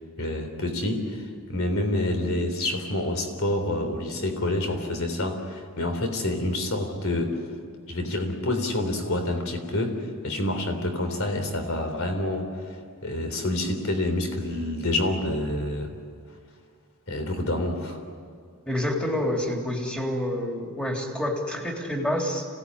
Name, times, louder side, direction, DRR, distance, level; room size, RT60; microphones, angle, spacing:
voice 1, 0.2-7.4 7.9-16.0 17.1-18.0, left 1 dB, 70° left, 6 dB, 3.5 m, -28 dB
voice 2, 18.7-22.5, left 1 dB, 5° left, 0 dB, 3.4 m, -28 dB
26.5 x 18.0 x 9.9 m, 2.1 s
head